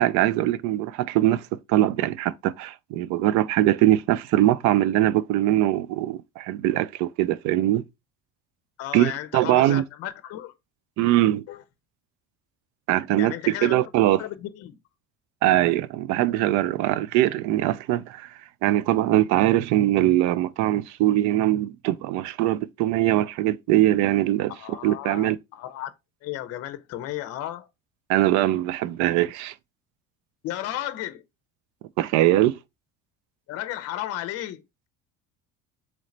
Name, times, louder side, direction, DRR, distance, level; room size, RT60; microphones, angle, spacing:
voice 1, 0.0-7.8 8.9-9.8 11.0-11.4 12.9-14.2 15.4-18.3 18.6-24.5 24.8-25.4 28.1-29.5 32.0-32.6, right 14 dB, 70° right, 0.4 m, -22 dB
voice 2, 8.8-10.5 11.5-11.6 13.2-13.8 14.2-14.8 24.5-25.9 26.2-27.7 30.4-31.2 33.5-34.6, left 13 dB, 55° left, 0.6 m, -34 dB
3.8 x 3.1 x 3.1 m
cardioid pair, 135°, 31 cm